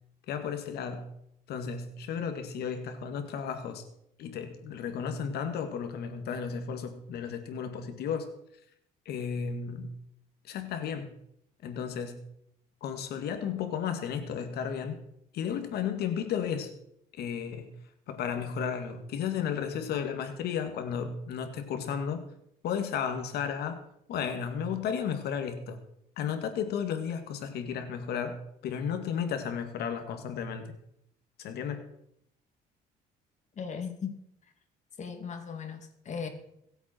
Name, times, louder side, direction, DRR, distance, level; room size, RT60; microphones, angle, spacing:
voice 1, 0.3-1.1 1.5-3.8 4.2-8.3 9.1-10.0 10.5-11.2 11.6-12.3 12.8-15.0 15.3-16.7 17.2-17.8 18.1-22.2 22.6-23.8 24.1-25.8 26.2-30.7 31.4-31.9, left 7 dB, 70° left, 7 dB, 2.1 m, -33 dB
voice 2, 33.6-34.2 35.0-36.3, left 6 dB, 45° left, 6 dB, 2.7 m, -37 dB
23.0 x 8.2 x 4.5 m, 0.74 s
cardioid pair, 110°, 17 cm